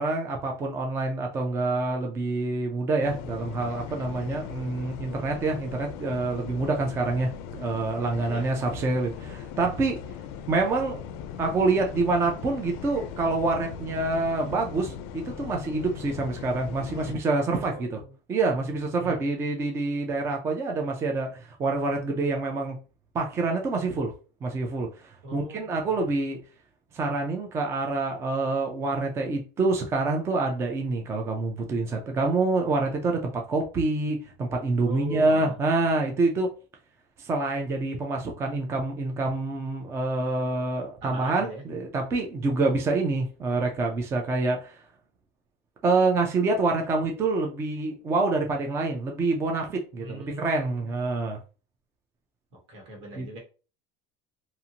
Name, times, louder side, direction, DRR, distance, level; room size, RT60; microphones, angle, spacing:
voice 1, 0.0-10.0 10.5-11.0 11.4-18.0 18.3-22.8 23.1-24.1 24.4-26.4 26.9-36.5 37.2-44.8 45.8-51.4 53.2-53.4, right 3 dB, 20° right, 2 dB, 0.4 m, -27 dB
sound 1, 3.0-17.1, left 7 dB, 65° left, 0.4 m, -39 dB
voice 2, 17.6-18.1 19.0-19.3 25.2-25.9 34.8-35.5 41.0-41.8 50.0-50.9 52.7-53.4, right 1 dB, 80° right, -1 dB, 1.4 m, -40 dB
2.7 x 2.5 x 2.7 m, 0.35 s
cardioid pair, 165°, 14 cm